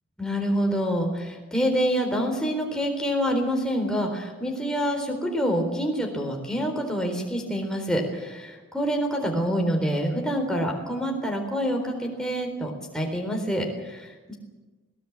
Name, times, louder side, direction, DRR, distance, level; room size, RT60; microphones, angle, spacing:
voice 1, 0.2-14.3, equal, 5° left, 2 dB, 3.9 m, -27 dB
20.5 x 19.0 x 8.7 m, 1.2 s
head